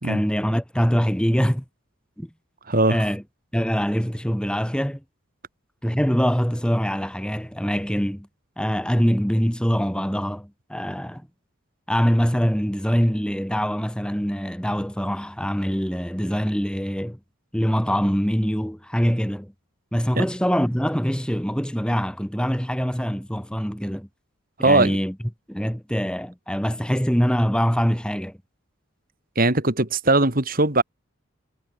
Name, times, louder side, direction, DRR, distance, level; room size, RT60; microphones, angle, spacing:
voice 1, 0.0-1.6 2.2-2.3 2.9-3.2 3.5-5.0 5.8-8.3 8.6-11.2 11.9-17.2 17.5-19.5 19.9-24.1 24.6-25.1 25.5-28.4, equal, 5° left, 3.4 m, -23 dB
voice 2, 2.7-3.0 20.1-20.2 24.6-25.0 29.4-30.8, right 2 dB, 45° right, 2.6 m, -20 dB
head